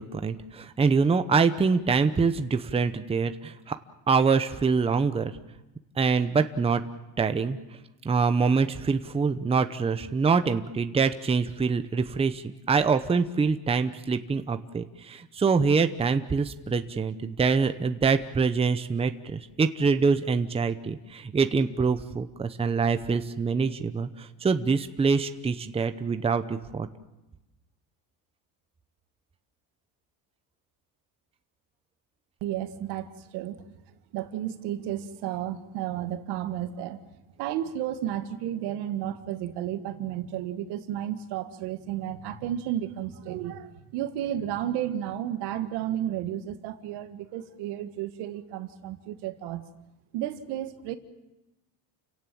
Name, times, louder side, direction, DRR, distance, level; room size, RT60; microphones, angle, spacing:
voice 1, 0.0-3.8 4.1-5.3 6.0-6.8 7.2-7.6 8.0-26.9, right 5 dB, 15° right, 9 dB, 0.9 m, -25 dB
voice 2, 32.4-33.6 34.1-37.0 37.4-49.7 50.1-51.0, right 11 dB, 75° right, 9 dB, 1.8 m, -32 dB
30.0 x 17.0 x 7.7 m, 1.0 s
cardioid pair, 135°, 40 cm